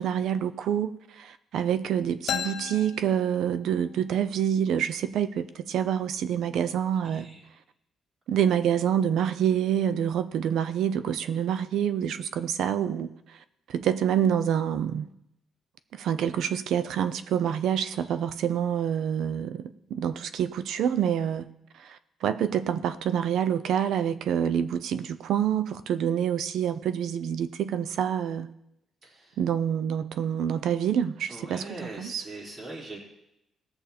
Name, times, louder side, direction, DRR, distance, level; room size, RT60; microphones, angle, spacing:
voice 1, 0.0-7.3 8.3-15.1 15.9-21.5 21.7-28.5 29.4-32.2, right 9 dB, 75° right, 0.7 m, -27 dB
sound 1, 2.3-4.0, left 9 dB, 75° left, 0.7 m, -35 dB
voice 2, 29.0-29.4 31.3-33.0, right 2 dB, 40° right, 4.5 m, -41 dB
18.0 x 6.7 x 4.3 m
cardioid pair, 90°, 0 cm